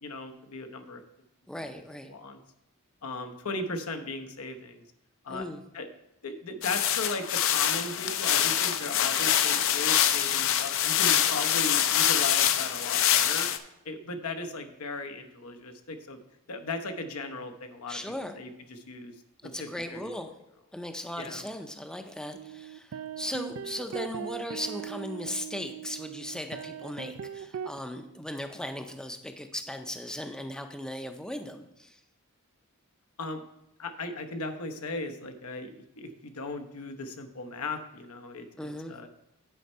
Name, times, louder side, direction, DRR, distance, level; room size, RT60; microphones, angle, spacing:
voice 1, 0.0-1.0 1.6-1.7 2.1-2.4 3.0-4.8 5.2-5.5 5.7-5.9 6.2-13.5 13.8-16.2 16.5-18.0 18.4-19.1 19.4-20.1 21.2-21.4 33.2-33.4 33.8-39.1, left 3 dB, 85° left, 6 dB, 0.9 m, -37 dB
voice 2, 1.5-2.1 5.3-5.6 17.9-18.4 19.4-20.3 20.7-32.0 38.6-39.0, left 1 dB, 5° left, 6 dB, 0.5 m, -37 dB
sound 1, 6.6-13.6, left 10 dB, 65° left, 0.5 m, -25 dB
sound 2, 22.3-27.8, right 8 dB, 70° right, 0.4 m, -39 dB
9.2 x 4.4 x 5.4 m, 0.84 s
head